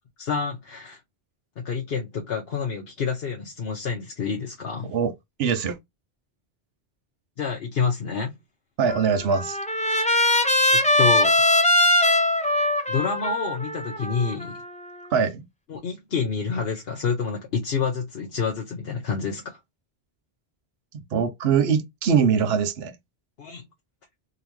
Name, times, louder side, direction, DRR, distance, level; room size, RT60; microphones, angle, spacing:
voice 1, 0.2-1.0 1.6-4.9 7.4-8.3 10.7-11.4 12.9-14.6 15.7-19.6 23.4-23.6, left 5 dB, 70° left, 1.0 m, -28 dB
voice 2, 4.8-5.1 5.4-5.8 8.8-9.6 15.1-15.5 20.9-23.0, right 6 dB, 70° right, 1.0 m, -22 dB
Trumpet, 8.9-15.0, left 1 dB, 10° left, 0.6 m, -21 dB
3.8 x 2.9 x 2.9 m
omnidirectional pair, 1.1 m